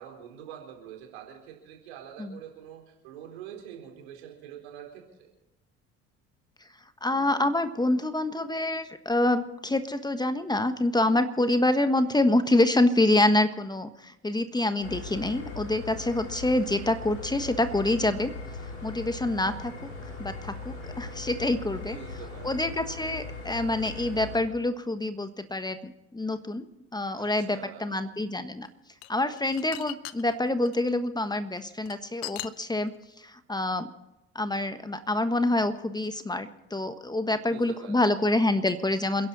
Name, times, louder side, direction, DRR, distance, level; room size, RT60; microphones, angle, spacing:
voice 1, 0.0-5.3 21.8-22.7 27.1-28.0 37.4-38.1, right 9 dB, 75° right, 1 dB, 4.3 m, -45 dB
voice 2, 7.0-18.3 18.8-19.9 20.2-22.0 22.4-28.7 29.1-32.9 33.2-33.9 34.3-39.3, left 2 dB, 10° left, 10 dB, 1.4 m, -26 dB
sound 1, 14.8-24.4, left 3 dB, 90° left, 3.2 m, -39 dB
sound 2, 28.6-30.8 31.5-33.0, left 18 dB, 65° left, 0.8 m, -39 dB
28.5 x 11.0 x 4.2 m, 0.95 s
hypercardioid pair, 60°, 32 cm